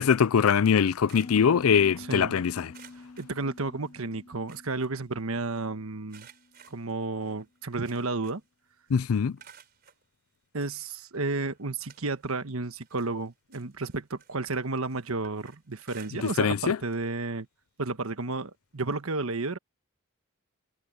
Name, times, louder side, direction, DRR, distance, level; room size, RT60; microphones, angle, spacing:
voice 1, 0.0-2.7 8.9-9.3 16.2-16.8, left 7 dB, 90° left, 0.4 m, -22 dB
sound 1, 1.1-2.3 2.7-4.0 4.3-5.6 6.1-8.6 8.9-10.0 10.7-10.8 11.3-12.5 12.8-16.6 16.9-17.1 17.4-17.5 18.8-18.9, right 8 dB, 45° right, 4.6 m, -56 dB
Piano, 1.2-6.8, left 3 dB, 35° left, 0.8 m, -47 dB
voice 2, 2.0-2.4 2.9-6.3 6.7-8.4 10.5-17.5 17.8-19.6, right 3 dB, 85° right, 1.3 m, -32 dB
head